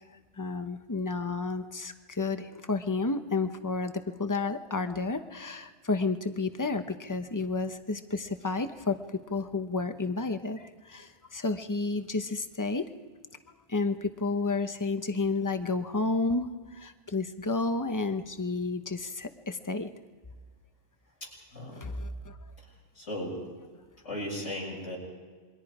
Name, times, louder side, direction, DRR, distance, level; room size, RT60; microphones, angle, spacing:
voice 1, 0.4-12.9 13.7-19.9 21.7-22.4, left 3 dB, 20° left, 8 dB, 0.8 m, -31 dB
voice 2, 21.2-21.8 23.0-23.4 24.0-25.0, left 1 dB, 85° left, -3 dB, 7.5 m, -36 dB
27.5 x 22.5 x 4.9 m, 1.5 s
omnidirectional pair, 1.2 m